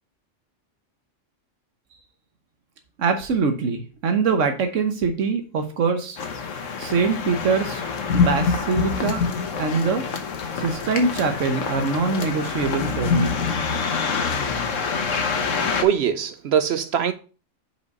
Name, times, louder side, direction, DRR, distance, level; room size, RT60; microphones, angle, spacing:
voice 1, 3.0-6.2 6.8-7.8 8.1-9.2 9.6-10.0 10.6-13.4, right 4 dB, 85° right, 1.3 m, -23 dB
sound 1, 6.2-15.8, left 5 dB, 90° left, 1.3 m, -25 dB
voice 2, 15.8-17.1, right 9 dB, 65° right, 0.8 m, -21 dB
5.3 x 4.9 x 5.3 m
omnidirectional pair, 1.3 m